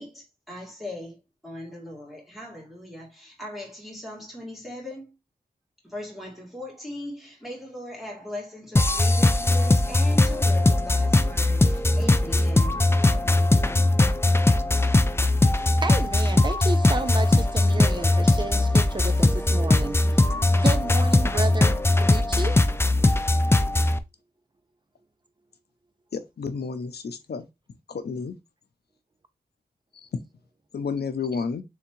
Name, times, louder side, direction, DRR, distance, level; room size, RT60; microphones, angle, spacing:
voice 1, 0.0-5.1 5.8-13.8, left 1 dB, ahead, 2.1 m, -39 dB
sound 1, 8.8-24.0, left 2 dB, 15° left, 0.4 m, -20 dB
voice 2, 15.7-22.6, right 3 dB, 30° right, 0.7 m, -32 dB
voice 3, 26.1-27.4 27.9-28.3 30.7-31.6, left 5 dB, 80° left, 0.6 m, -31 dB
3.6 x 3.4 x 3.0 m
wide cardioid pair, 70°, 17 cm